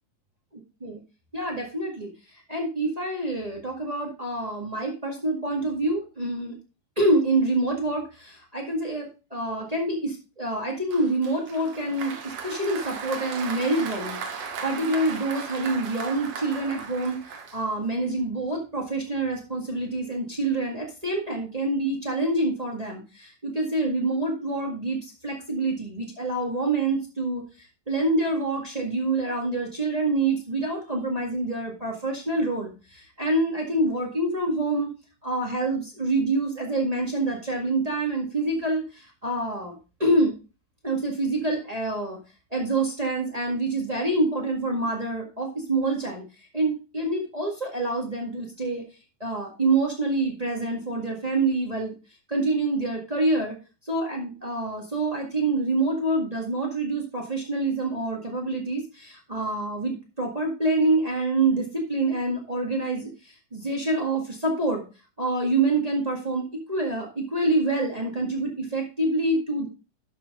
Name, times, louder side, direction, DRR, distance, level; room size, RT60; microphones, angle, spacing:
voice 1, 1.3-6.5 6.9-34.9 35.2-40.3 40.8-42.2 42.5-46.2 46.5-48.8 49.2-51.9 52.3-53.5 53.8-64.8 65.2-69.7, right 2 dB, 30° right, 0 dB, 0.7 m, -26 dB
Applause, 10.9-18.0, right 6 dB, 60° right, 2.0 m, -37 dB
12.0 x 6.3 x 3.6 m, 0.32 s
omnidirectional pair, 4.2 m